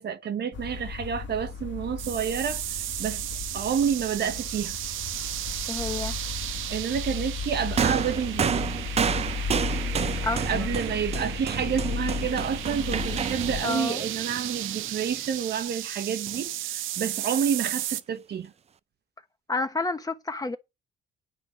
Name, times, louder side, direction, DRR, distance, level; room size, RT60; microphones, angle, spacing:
voice 1, 0.0-2.6 3.0-3.2 3.5-4.8 6.7-8.6 10.5-18.5, right 7 dB, 55° right, 1.1 m, -29 dB
sound 1, 0.5-13.6, left 6 dB, 70° left, 1.7 m, -35 dB
sound 2, 2.0-18.0, right 13 dB, 85° right, 0.6 m, -35 dB
voice 2, 5.7-6.1 10.2-10.8 13.6-14.0 19.5-20.6, left 2 dB, 20° left, 1.2 m, -30 dB
sound 3, 7.8-15.3 16.3-16.4, right 7 dB, 35° right, 0.4 m, -30 dB
9.9 x 4.5 x 7.0 m
cardioid pair, 90°, 20 cm